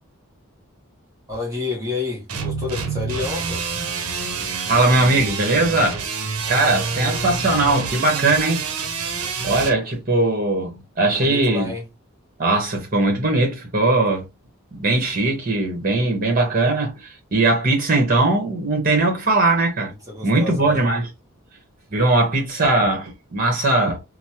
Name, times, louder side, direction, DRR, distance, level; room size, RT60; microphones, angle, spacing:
voice 1, 1.3-3.7 11.1-11.9 20.1-20.8, left 3 dB, 15° right, 1.2 m, -29 dB
sound 1, 2.3-9.8, right 5 dB, 75° right, 0.7 m, -27 dB
voice 2, 4.4-6.0 6.5-8.7 9.4-11.7 12.4-14.3 14.7-19.9 20.2-21.1 21.9-24.0, right 2 dB, 40° right, 1.1 m, -20 dB
3.1 x 2.0 x 2.8 m
head